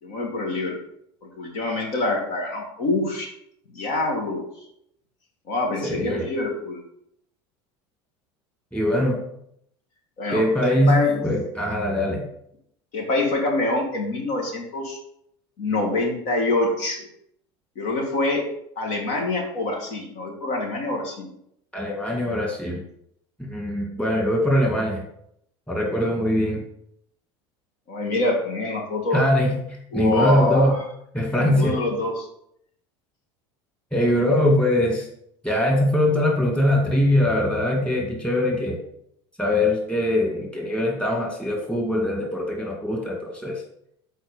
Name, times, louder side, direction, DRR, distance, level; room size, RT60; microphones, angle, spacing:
voice 1, 0.0-0.8 1.2-3.3 3.7-4.4 5.5-6.8 10.2-11.2 12.9-15.0 15.6-17.1 17.8-18.4 18.8-21.3 27.9-29.3 29.9-30.8 31.3-32.3, left 2 dB, 70° left, 1 dB, 2.1 m, -25 dB
voice 2, 5.8-6.3 8.7-9.2 10.3-12.3 21.7-22.8 23.4-25.1 25.7-26.6 29.1-29.6 29.9-30.8 31.1-31.8 33.9-35.1 35.4-38.8 39.4-43.6, left 1 dB, 10° left, 0 dB, 2.1 m, -22 dB
7.8 x 4.4 x 5.1 m, 0.73 s
supercardioid pair, 90°, 13 cm